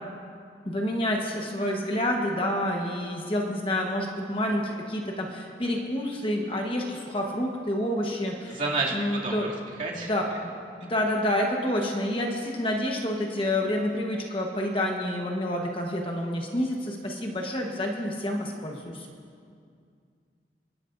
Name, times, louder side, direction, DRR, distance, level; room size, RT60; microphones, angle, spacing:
voice 1, 0.6-8.6 8.9-9.5 9.9-10.5 10.8-19.1, left 1 dB, 30° left, 1 dB, 1.2 m, -28 dB
voice 2, 8.4-8.9 9.2-9.5 9.8-10.1 10.8-10.9, right 3 dB, 45° right, -5 dB, 2.6 m, -30 dB
28.5 x 11.0 x 2.6 m, 2.3 s
head